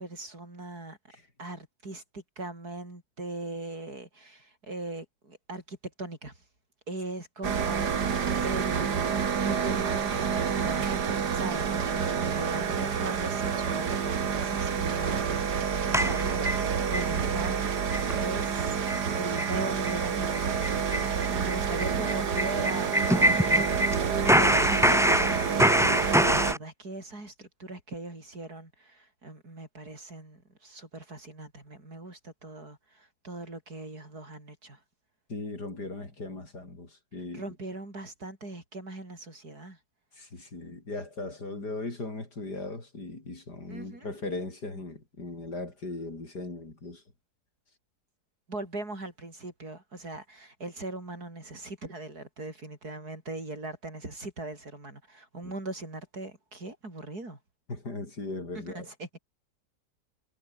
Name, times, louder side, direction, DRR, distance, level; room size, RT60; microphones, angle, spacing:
voice 1, 0.0-1.0 1.4-6.3 6.9-18.8 19.1-34.8 37.3-39.8 43.7-44.1 48.5-57.4 58.5-59.2, right 2 dB, 70° right, 7.0 m, -40 dB
sound 1, 7.4-26.5, right 6 dB, 85° right, 2.4 m, -28 dB
sound 2, 15.9-17.1 17.4-17.5 17.9-18.1 18.4-18.5 18.9-19.0 19.4-19.5 19.8-20.0 20.3-24.0 24.2-26.6, equal, ahead, 1.5 m, -25 dB
voice 2, 35.3-37.4 40.1-47.0 55.4-55.5 57.7-58.9, left 2 dB, 85° left, 6.3 m, -38 dB
omnidirectional pair, 1.7 m